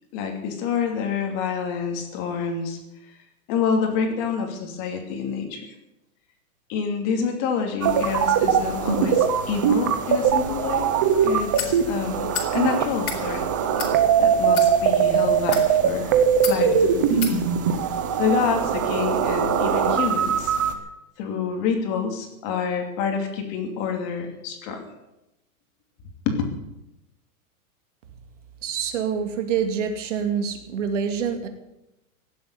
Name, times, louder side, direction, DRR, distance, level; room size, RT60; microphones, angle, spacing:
voice 1, 0.1-2.8 3.0-3.2 3.5-5.7 6.7-11.0 11.2-13.4 14.2-16.1 16.5-17.5 18.2-20.5 21.2-24.8 26.2-26.4, left 6 dB, 30° left, 4 dB, 2.7 m, -27 dB
sound 1, 7.8-20.7, right 7 dB, 15° right, 0.4 m, -21 dB
sound 2, 11.6-11.7 12.3-12.5 12.9-13.2 13.8-13.9 14.5-14.7 15.4-15.7 16.4-16.6 17.2-17.4, left 7 dB, 75° left, 4.1 m, -29 dB
voice 2, 28.6-31.5, right 7 dB, 55° right, 7 dB, 2.4 m, -26 dB
17.0 x 7.9 x 9.7 m, 0.91 s
hypercardioid pair, 165°, 43 cm